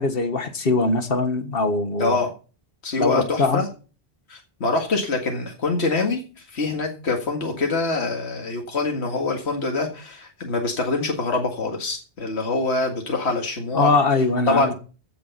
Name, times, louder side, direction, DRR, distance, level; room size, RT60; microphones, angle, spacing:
voice 1, 0.0-2.2 3.0-3.6 13.7-14.7, left 3 dB, 60° left, 1.7 m, -21 dB
voice 2, 2.0-2.3 2.8-3.7 4.3-13.9 14.5-14.7, left 3 dB, 75° left, 2.2 m, -25 dB
15.0 x 7.1 x 5.8 m
omnidirectional pair, 1.1 m